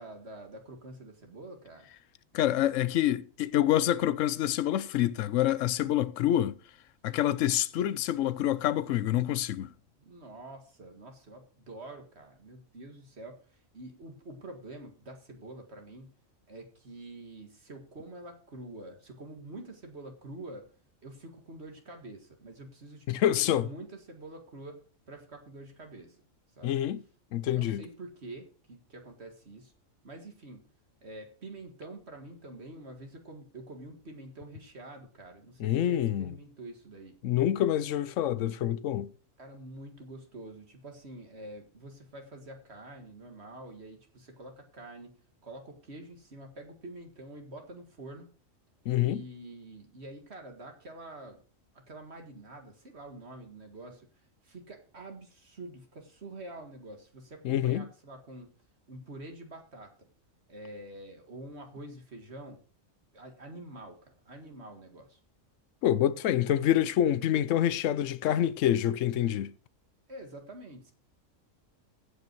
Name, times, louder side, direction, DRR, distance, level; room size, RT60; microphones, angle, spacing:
voice 1, 0.0-1.9 10.0-16.1 16.5-20.7 21.0-26.2 26.6-26.8 27.4-29.7 30.0-30.6 31.0-37.2 39.4-45.2 45.4-48.3 49.0-51.4 51.7-54.1 54.4-58.5 58.9-60.1 60.5-62.6 63.1-65.2 70.1-70.9, right 2 dB, 50° right, 2.1 m, -46 dB
voice 2, 2.3-6.5 7.0-9.7 23.1-23.7 26.6-27.0 27.3-27.8 35.6-36.3 37.2-39.1 48.9-49.2 57.4-57.9 65.8-69.5, left 12 dB, 70° left, 1.0 m, -27 dB
16.0 x 5.6 x 4.6 m
omnidirectional pair, 1.4 m